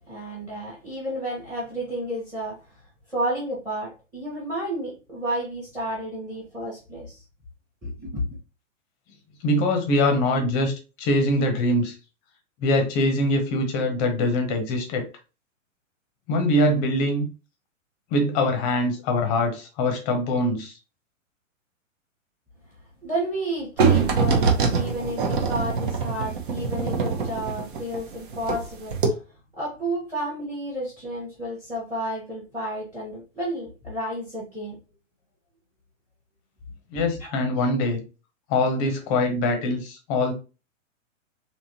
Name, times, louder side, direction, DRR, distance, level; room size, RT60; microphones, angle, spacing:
voice 1, 0.1-2.6 3.1-7.2 7.8-8.4 23.0-29.2 29.6-34.8 36.9-37.3, right 1 dB, 5° right, 1.2 m, -31 dB
voice 2, 9.4-10.7 11.0-11.9 12.6-15.0 16.3-17.3 18.1-20.7 36.9-38.0 38.5-40.3, left 1 dB, 25° left, 0.9 m, -23 dB
sound 1, 23.8-28.6 28.9-29.1, right 5 dB, 40° right, 0.9 m, -23 dB
3.6 x 2.8 x 2.8 m
figure-of-eight pair, 115°, 39 cm